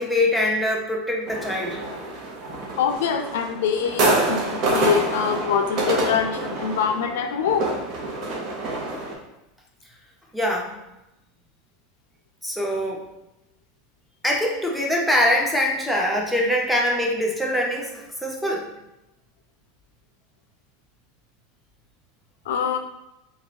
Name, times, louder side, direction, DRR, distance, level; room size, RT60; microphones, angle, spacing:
voice 1, 0.0-1.8 10.3-10.7 12.4-13.0 14.2-18.7, left 1 dB, ahead, -2 dB, 0.7 m, -23 dB
sound 1, 1.3-9.1, right 2 dB, 45° right, 0.9 m, -27 dB
voice 2, 2.8-7.7 22.5-22.8, left 7 dB, 80° left, 6 dB, 0.5 m, -24 dB
4.1 x 2.4 x 3.4 m, 0.90 s
supercardioid pair, 130°, 0 cm